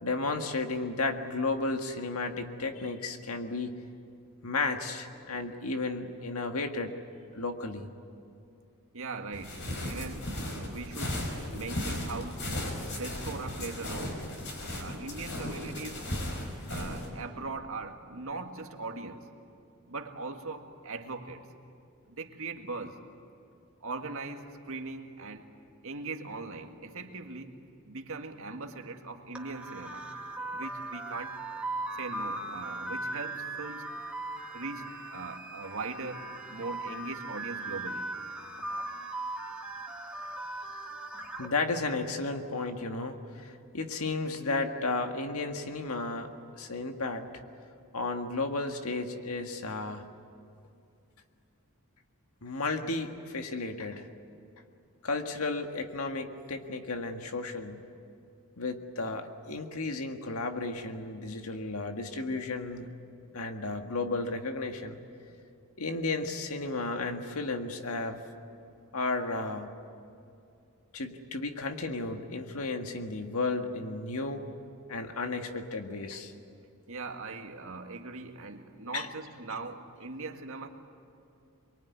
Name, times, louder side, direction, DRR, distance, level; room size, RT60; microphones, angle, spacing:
voice 1, 0.0-3.7 4.4-6.9 7.4-7.9 41.4-46.3 46.6-47.3 47.9-50.1 52.4-54.1 55.0-57.8 58.6-62.9 63.3-65.0 65.8-68.2 68.9-69.7 70.9-74.4 74.9-76.3 78.9-79.1, left 3 dB, 70° left, 5 dB, 1.9 m, -33 dB
voice 2, 8.9-12.5 12.9-14.2 14.8-16.2 16.7-19.3 19.9-21.4 22.1-23.0 23.8-25.6 25.8-27.6 27.9-30.1 30.5-31.4 31.9-33.9 34.5-38.1 38.6-38.9 76.9-80.7, right 3 dB, 65° right, 4 dB, 2.0 m, -40 dB
sound 1, 9.3-17.1, left 1 dB, 55° left, 5.1 m, -36 dB
sound 2, 29.4-41.5, right 2 dB, 5° right, 2.0 m, -38 dB
23.5 x 23.5 x 9.6 m, 2.6 s
head